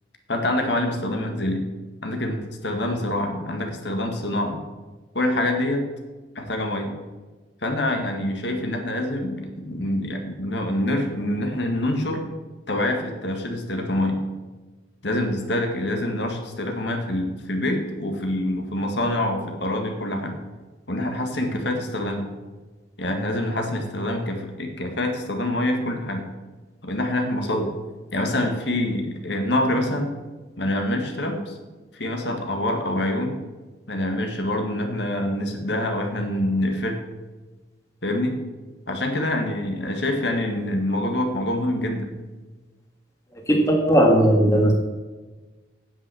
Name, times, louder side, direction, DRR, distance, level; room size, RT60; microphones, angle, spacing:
voice 1, 0.3-1.6 2.0-4.6 5.1-5.8 6.4-6.9 7.6-12.3 12.7-14.1 15.0-20.4 20.9-22.3 23.0-26.2 26.8-27.7 28.1-30.1 30.6-31.6 31.9-33.4 33.9-37.0 38.0-38.4 38.9-42.1, left 1 dB, 70° left, 3 dB, 1.8 m, -26 dB
voice 2, 43.5-44.7, equal, 15° left, 0 dB, 1.8 m, -17 dB
9.7 x 8.2 x 7.0 m, 1.3 s
head